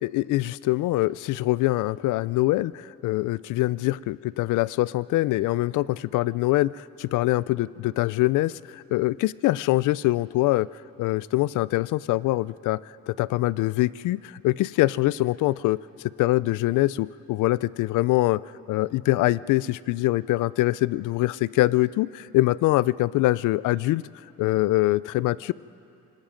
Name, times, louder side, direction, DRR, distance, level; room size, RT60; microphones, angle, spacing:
voice 1, 0.0-10.7 11.0-12.8 13.1-18.4 18.7-24.0 24.4-25.5, left 18 dB, 85° left, 20 dB, 0.5 m, -24 dB
26.5 x 19.5 x 5.1 m, 2.7 s
cardioid pair, 90°, 30 cm